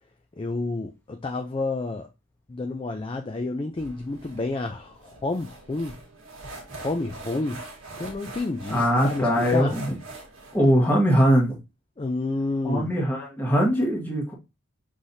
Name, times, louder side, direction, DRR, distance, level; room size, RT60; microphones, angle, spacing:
voice 1, 0.4-2.1 2.5-6.0 6.7-7.6 8.0-9.8 12.0-12.9, left 2 dB, 25° left, 0.3 m, -30 dB
sound 1, 3.8-10.7, right 2 dB, 80° right, 1.4 m, -42 dB
voice 2, 8.7-9.9 10.5-11.6 12.6-14.3, equal, 10° left, 1.3 m, -21 dB
5.6 x 3.2 x 2.7 m
head